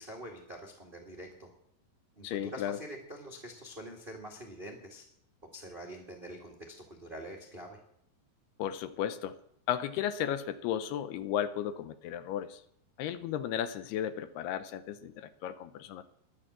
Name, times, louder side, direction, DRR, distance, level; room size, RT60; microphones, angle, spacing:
voice 1, 0.0-1.5 2.2-5.0 5.5-7.8, right 1 dB, 65° right, 0 dB, 0.5 m, -45 dB
voice 2, 2.2-2.8 8.6-9.4 9.7-12.6 13.0-16.0, left 10 dB, 80° left, 11 dB, 2.5 m, -34 dB
11.5 x 10.5 x 7.9 m, 0.72 s
omnidirectional pair, 4.9 m